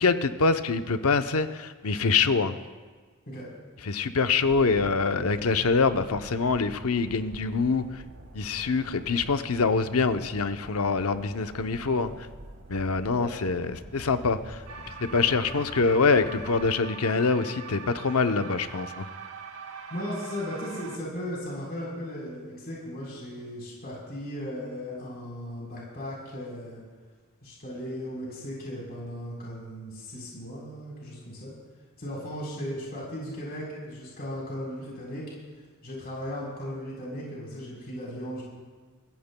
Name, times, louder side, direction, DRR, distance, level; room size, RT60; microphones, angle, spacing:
voice 1, 0.0-2.6 3.9-7.8 8.3-12.3 12.7-14.6 15.0-19.1, left 4 dB, 80° left, 9 dB, 0.7 m, -25 dB
sound 1, 4.4-16.7, right 1 dB, 65° right, 1.6 m, -47 dB
sound 2, 14.7-21.0, right 5 dB, 90° right, 1.0 m, -42 dB
voice 2, 19.9-26.8 27.4-31.5 32.0-35.3 35.8-38.4, equal, 45° left, -5 dB, 4.0 m, -36 dB
24.0 x 15.0 x 2.2 m, 1.5 s
head